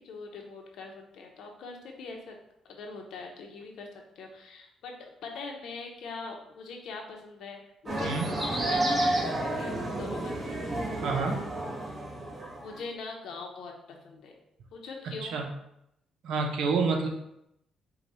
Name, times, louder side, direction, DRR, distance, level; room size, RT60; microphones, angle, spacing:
voice 1, 0.0-2.3 2.6-3.9 4.2-10.6 12.6-14.4 14.7-15.4, left 4 dB, 75° left, 1 dB, 0.9 m, -42 dB
sound 1, 7.9-12.8, right 1 dB, 30° right, 1.3 m, -30 dB
voice 2, 11.0-11.4 15.2-15.5 16.2-17.1, right 4 dB, 80° right, 3 dB, 0.7 m, -28 dB
4.9 x 2.3 x 4.0 m, 0.79 s
cardioid pair, 90°, 0 cm